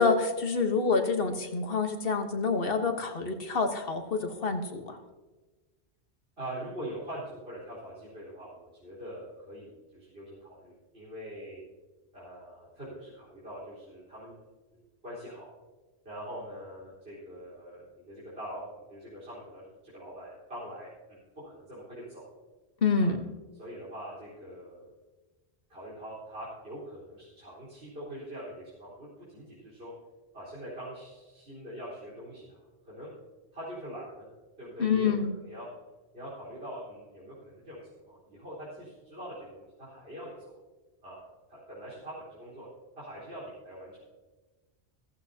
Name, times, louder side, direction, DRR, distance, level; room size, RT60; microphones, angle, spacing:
voice 1, 0.0-5.0 22.8-23.2 34.8-35.3, left 4 dB, 60° left, 5 dB, 1.4 m, -27 dB
voice 2, 6.4-11.6 12.1-14.4 14.7-15.5 16.0-22.3 23.0-23.1 23.6-24.9 25.7-29.9 30.3-33.1 33.5-34.3 34.6-35.7 36.1-40.6 41.0-41.2 41.5-42.7 43.0-44.1, right 1 dB, 65° right, -9 dB, 4.5 m, -43 dB
15.0 x 15.0 x 2.8 m, 1.2 s
omnidirectional pair, 1.1 m